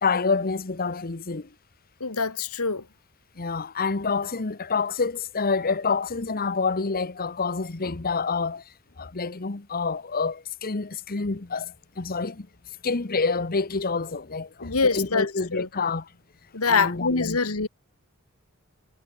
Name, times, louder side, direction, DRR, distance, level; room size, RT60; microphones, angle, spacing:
voice 1, 0.0-1.5 3.4-8.6 9.0-12.5 12.8-16.1 16.6-17.4, left 4 dB, 45° left, 1.1 m, -27 dB
voice 2, 2.0-2.8 14.6-15.7 16.5-17.7, left 4 dB, 85° left, 1.9 m, -25 dB
head